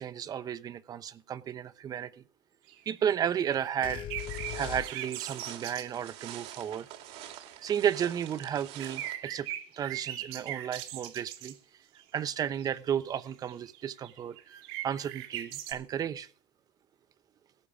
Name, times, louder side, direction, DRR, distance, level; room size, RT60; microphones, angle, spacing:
voice 1, 0.0-2.2 2.9-4.0 4.5-6.9 7.6-9.5 9.8-11.5 12.1-14.6 14.8-16.3, right 9 dB, 30° right, 15 dB, 0.8 m, -33 dB
sound 1, 2.7-3.1 3.4-5.9 6.7-6.8 7.1-11.5 12.3-15.7, right 13 dB, 75° right, 2.6 m, -41 dB
sound 2, 3.8-5.4, left 11 dB, 40° left, 0.8 m, -39 dB
sound 3, 4.2-9.2, right 11 dB, 55° right, 2.2 m, -46 dB
17.5 x 8.5 x 4.9 m, 0.42 s
supercardioid pair, 140°, 13 cm